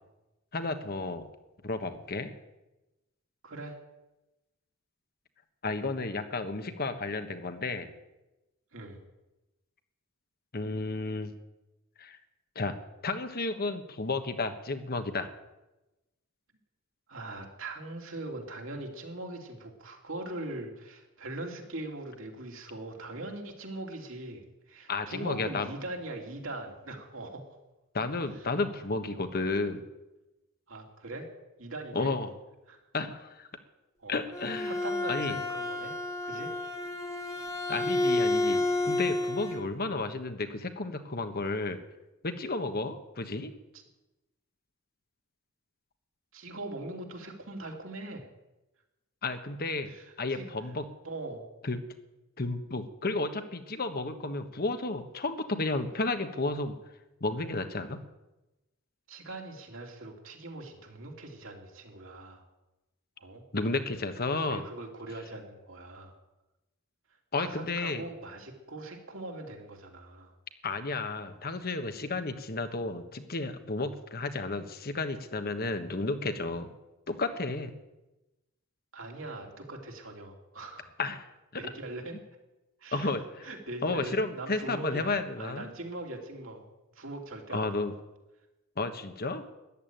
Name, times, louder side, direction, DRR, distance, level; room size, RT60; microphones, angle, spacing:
voice 1, 0.5-1.3 1.6-2.3 5.6-7.9 10.5-11.3 12.0-12.2 12.5-12.8 13.0-15.3 24.9-25.7 27.9-29.8 31.9-32.3 32.9-33.5 34.1-34.7 35.1-35.4 37.7-41.8 42.2-43.5 49.2-50.8 51.6-51.8 52.4-56.7 57.2-58.0 63.5-64.6 67.3-68.0 70.6-76.7 77.1-77.7 81.0-81.3 81.5-81.7 82.9-83.5 83.8-85.7 87.5-87.9 88.8-89.4, left 3 dB, 45° left, 8 dB, 1.3 m, -32 dB
voice 2, 3.4-3.8 8.7-9.0 17.1-27.6 28.3-28.5 30.7-31.3 31.6-32.1 32.7-32.8 34.0-34.2 34.7-35.9 36.2-36.5 46.3-48.2 49.9-50.5 51.0-51.5 59.1-62.5 63.2-63.4 64.5-66.2 67.4-70.3 78.9-80.9 81.5-82.2 82.8-83.1 83.4-86.6 86.9-87.9, right 2 dB, 65° right, 2 dB, 3.0 m, -41 dB
Bowed string instrument, 34.1-39.7, left 2 dB, 15° left, 1.8 m, -30 dB
14.0 x 11.0 x 9.3 m, 1.0 s
head